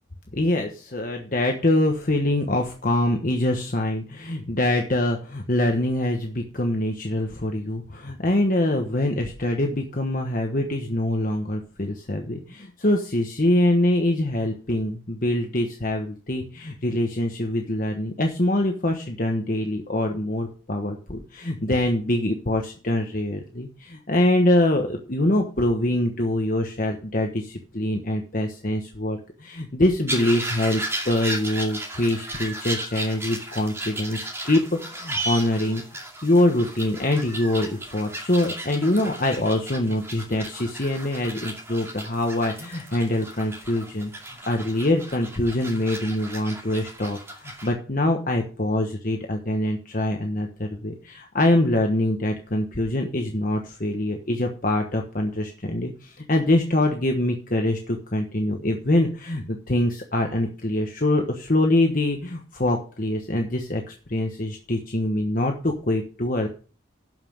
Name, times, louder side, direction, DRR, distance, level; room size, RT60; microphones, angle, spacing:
voice 1, 0.3-35.8 36.2-44.1 44.4-66.5, left 1 dB, 45° left, 2 dB, 1.2 m, -24 dB
sound 1, 30.1-47.7, right 1 dB, 15° right, 2.2 m, -35 dB
12.5 x 5.8 x 6.4 m, 0.40 s
head